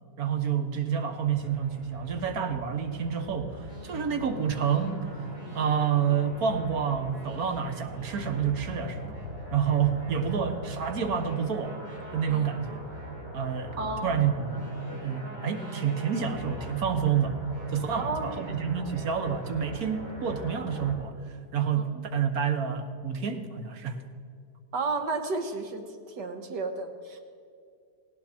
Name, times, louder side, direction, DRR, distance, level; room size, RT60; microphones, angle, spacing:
voice 1, 0.2-5.1 5.5-9.1 9.5-11.8 12.1-12.8 13.3-17.4 17.7-21.2 21.5-24.0, right 7 dB, 65° right, 8 dB, 1.7 m, -28 dB
sound 1, 1.0-20.9, equal, 35° right, 4.4 m, -41 dB
voice 2, 13.8-14.1 17.9-18.4 21.7-22.0 24.7-27.2, right 3 dB, 85° right, 6 dB, 2.0 m, -33 dB
17.5 x 17.0 x 4.4 m, 2.3 s
omnidirectional pair, 1.8 m